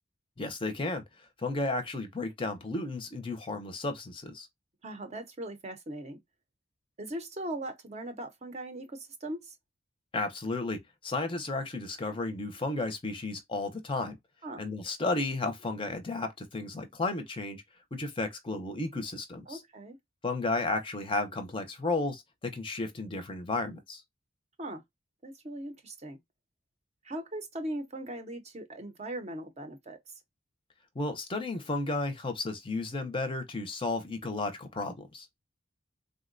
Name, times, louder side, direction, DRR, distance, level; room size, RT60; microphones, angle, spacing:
voice 1, 0.4-4.5 10.1-14.2 14.6-17.6 17.9-19.6 20.2-24.0 31.0-35.3, left 2 dB, 25° left, 0.5 m, -33 dB
voice 2, 4.8-6.2 7.0-9.6 14.4-14.6 19.5-20.0 24.6-24.8 25.2-26.2 27.0-30.0, right 1 dB, 35° right, 0.6 m, -39 dB
3.7 x 2.1 x 2.4 m
head